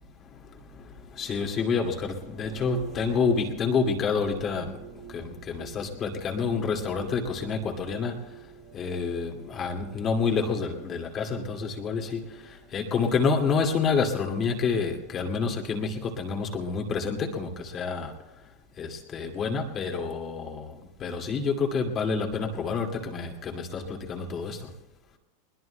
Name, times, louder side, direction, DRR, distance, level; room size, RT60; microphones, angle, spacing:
voice 1, 0.2-18.2 18.8-24.7, left 5 dB, 30° left, 2 dB, 2.2 m, -29 dB
sound 1, 2.4-15.6, right 8 dB, 60° right, 6.5 m, -48 dB
21.5 x 20.5 x 2.3 m, 1.1 s
hypercardioid pair, 115°, 0 cm